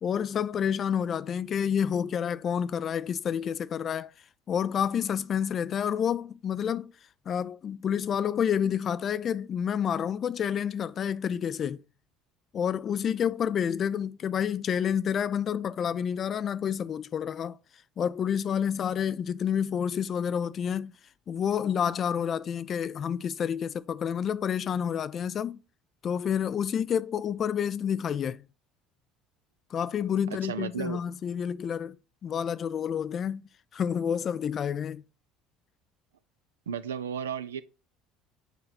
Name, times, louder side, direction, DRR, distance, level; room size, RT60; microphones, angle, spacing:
voice 1, 0.0-4.1 4.5-6.9 7.3-11.8 12.5-17.6 18.0-20.9 21.3-25.6 26.0-28.4 29.7-32.0 32.2-35.0, left 8 dB, 40° left, 0.3 m, -29 dB
voice 2, 30.3-31.0 36.7-37.6, right 7 dB, 80° right, 0.3 m, -34 dB
8.0 x 3.1 x 4.1 m
figure-of-eight pair, 60°, 0 cm